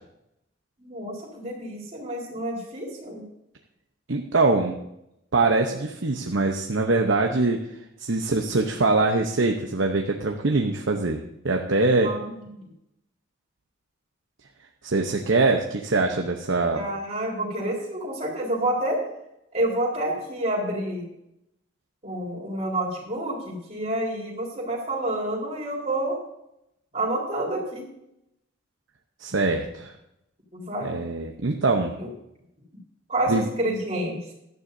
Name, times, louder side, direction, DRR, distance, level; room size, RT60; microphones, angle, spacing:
voice 1, 0.8-3.2 12.0-12.5 16.7-19.0 19.5-21.1 22.0-26.1 26.9-27.8 30.5-31.0 32.0-32.1 33.1-34.2, right 1 dB, 35° right, -3 dB, 4.1 m, -28 dB
voice 2, 4.1-4.8 5.3-7.6 8.0-11.2 11.4-12.1 14.8-16.9 29.2-29.9 30.8-31.9 33.3-33.5, right 3 dB, 75° right, 3 dB, 0.9 m, -23 dB
16.5 x 12.0 x 2.7 m, 0.83 s
head